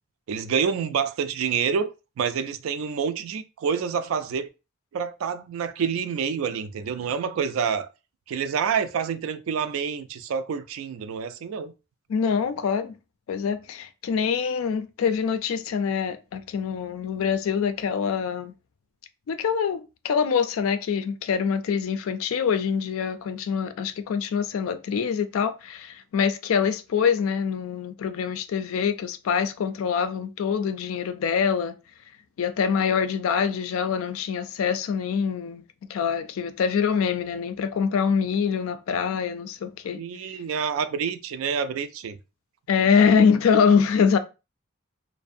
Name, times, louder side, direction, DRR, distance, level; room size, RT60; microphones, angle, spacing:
voice 1, 0.3-4.5 4.9-7.9 8.3-11.7 39.9-42.2, right 6 dB, 80° right, 0.3 m, -27 dB
voice 2, 12.1-12.9 13.3-18.5 19.3-31.8 32.4-35.6 35.9-40.0 42.7-44.2, left 6 dB, 85° left, 0.3 m, -24 dB
2.5 x 2.1 x 2.5 m
head